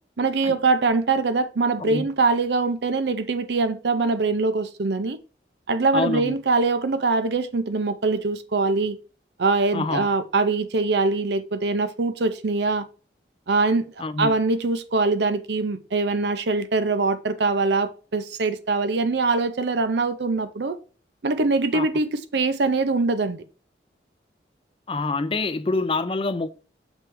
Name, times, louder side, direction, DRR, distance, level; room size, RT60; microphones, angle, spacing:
voice 1, 0.2-5.2 5.7-9.0 9.4-12.9 13.5-13.9 14.2-20.8 21.2-23.4, right 3 dB, 70° right, 0.6 m, -23 dB
voice 2, 5.9-6.3 9.7-10.1 14.0-14.3 21.7-21.9 24.9-26.5, left 3 dB, 30° left, 0.4 m, -26 dB
6.2 x 3.3 x 4.6 m
head